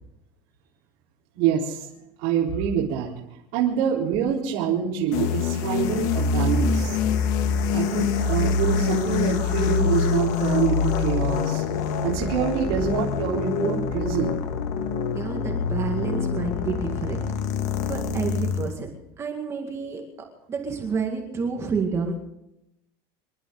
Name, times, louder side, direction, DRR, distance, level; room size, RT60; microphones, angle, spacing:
voice 1, 1.4-1.9 2.2-3.1 3.5-6.9 7.7-11.6 12.0-14.4, right 8 dB, 55° right, -6 dB, 3.8 m, -25 dB
sound 1, 5.1-18.8, left 6 dB, 55° left, 1.8 m, -25 dB
voice 2, 15.1-17.3 17.8-18.9 19.2-22.2, right 5 dB, 20° right, 2 dB, 2.0 m, -29 dB
27.0 x 12.5 x 3.9 m, 0.83 s
cardioid pair, 165°, 13 cm